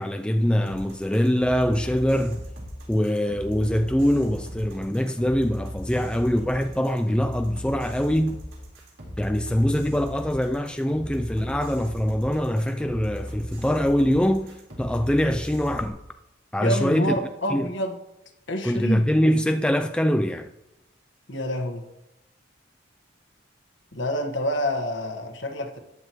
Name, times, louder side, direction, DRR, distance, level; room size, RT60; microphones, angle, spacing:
voice 1, 0.0-2.4 2.9-8.4 9.2-16.0 16.5-17.1 17.5-17.7 18.6-20.5, equal, 5° left, 0.3 m, -23 dB
sound 1, 0.7-15.9, equal, 75° right, 4.0 m, -38 dB
voice 2, 16.6-18.0 18.5-19.1 21.3-21.8 23.9-25.8, equal, 65° left, 1.4 m, -27 dB
14.0 x 9.9 x 3.1 m
head